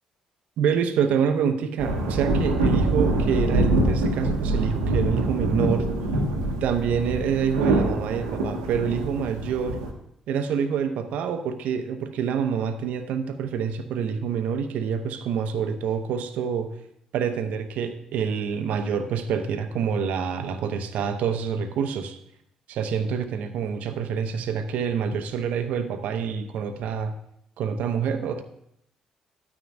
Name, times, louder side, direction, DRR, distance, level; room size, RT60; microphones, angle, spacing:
voice 1, 0.6-5.9 6.6-9.8 10.3-16.8 17.1-22.2 22.7-27.1 27.6-28.4, right 7 dB, 65° right, 9 dB, 0.8 m, -27 dB
sound 1, 1.8-9.9, right 1 dB, 85° right, 1.1 m, -25 dB
12.5 x 9.5 x 2.6 m, 0.75 s
hypercardioid pair, 45°, 3 cm